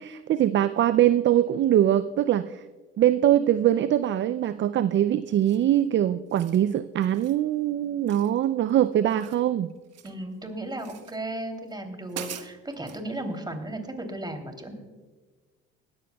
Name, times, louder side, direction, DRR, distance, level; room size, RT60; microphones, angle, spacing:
voice 1, 0.0-2.6 3.0-9.7, right 11 dB, 40° right, 14 dB, 0.5 m, -22 dB
sound 1, 5.4-5.8 6.2-6.6 7.0-7.4 8.1-8.7 9.0-10.2 10.8-11.2 11.7-11.8 12.1-13.0, right 9 dB, 60° right, 1.2 m, -43 dB
voice 2, 10.0-14.7, right 1 dB, 15° right, 5 dB, 3.1 m, -35 dB
19.5 x 14.0 x 2.3 m, 1.3 s
hypercardioid pair, 65°, 29 cm